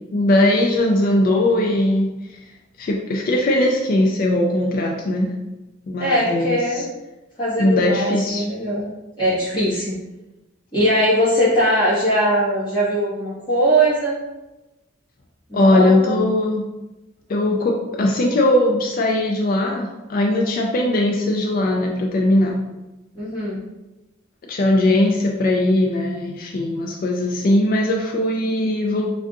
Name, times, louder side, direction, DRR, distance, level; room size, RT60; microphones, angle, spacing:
voice 1, 0.1-2.4 2.8-5.3 5.9-6.8 7.6-8.4 15.5-16.7 17.3-22.6 24.5-29.1, left 1 dB, 45° left, 0 dB, 0.3 m, -19 dB
voice 2, 6.0-6.9 7.4-8.8 9.2-9.9 10.7-14.2 15.5-16.2 23.1-23.6, equal, 25° left, -10 dB, 1.5 m, -20 dB
3.4 x 2.6 x 2.5 m, 1.0 s
head